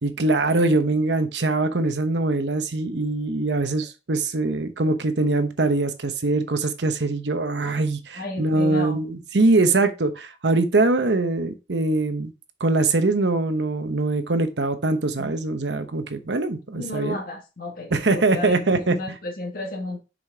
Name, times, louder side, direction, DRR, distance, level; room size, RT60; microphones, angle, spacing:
voice 1, 0.0-12.3 12.6-17.2 17.9-19.2, right 2 dB, 75° right, 0.9 m, -23 dB
voice 2, 8.2-9.0 15.2-15.3 16.7-20.0, left 2 dB, 55° left, 1.7 m, -33 dB
6.2 x 5.0 x 3.4 m
head